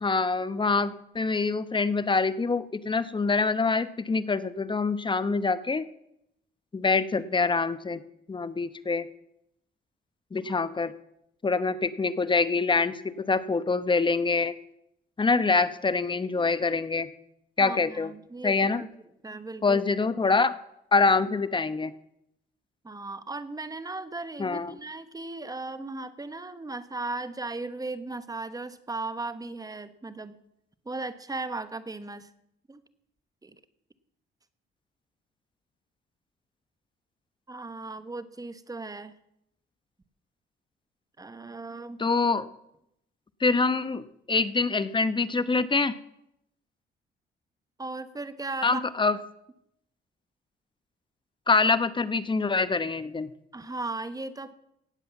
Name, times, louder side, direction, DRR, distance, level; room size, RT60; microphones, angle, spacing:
voice 1, 0.0-5.9 6.7-8.0 8.3-9.0 10.3-10.9 11.4-14.5 15.2-17.1 17.6-18.1 18.4-18.8 19.6-20.5 20.9-21.9 24.4-24.8 42.0-42.5 43.4-45.9 48.6-49.2 51.5-53.3, left 4 dB, 25° left, 14 dB, 0.9 m, -25 dB
voice 2, 17.6-18.9 19.2-19.8 22.8-30.4 30.8-32.3 32.7-32.8 33.4-33.6 37.5-39.1 41.2-42.0 47.8-48.8 53.5-54.5, right 3 dB, 20° right, 12 dB, 1.1 m, -37 dB
17.5 x 7.8 x 7.2 m, 0.80 s
cardioid pair, 90°, 20 cm